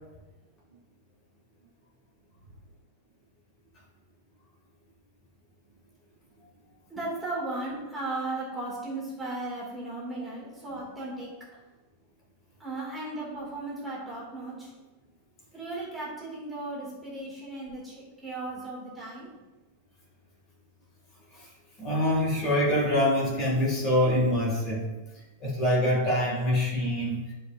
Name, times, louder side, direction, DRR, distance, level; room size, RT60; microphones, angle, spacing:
voice 1, 6.9-11.3 12.6-14.7 15.5-19.3, right 2 dB, 5° right, -7 dB, 2.2 m, -36 dB
voice 2, 21.8-24.8 25.4-27.3, left 1 dB, 30° left, -3 dB, 2.1 m, -25 dB
12.0 x 5.1 x 2.5 m, 1.1 s
supercardioid pair, 165°, 0 cm